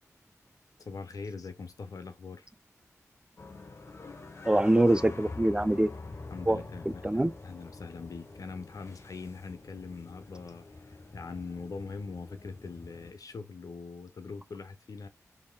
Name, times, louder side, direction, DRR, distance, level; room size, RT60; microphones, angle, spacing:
voice 1, 0.8-2.5 4.5-4.6 6.3-15.1, left 4 dB, 80° left, 0.7 m, -42 dB
sound 1, 3.4-13.1, left 3 dB, 50° left, 1.0 m, -46 dB
voice 2, 4.4-5.9 6.5-7.3, right 1 dB, 15° right, 0.4 m, -25 dB
3.6 x 3.5 x 2.3 m
cardioid pair, 40°, 6 cm